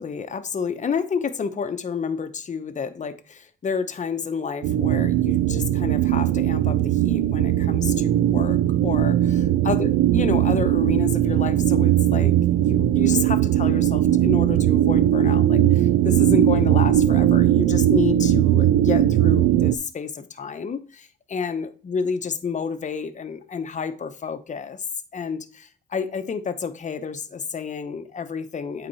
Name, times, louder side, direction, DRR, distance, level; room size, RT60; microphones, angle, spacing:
voice 1, 0.0-24.8 25.1-28.9, left 6 dB, 40° left, 0.9 m, -30 dB
sound 1, 4.6-19.8, right 12 dB, 90° right, 0.4 m, -19 dB
8.6 x 4.3 x 4.2 m
cardioid pair, 90°, 20 cm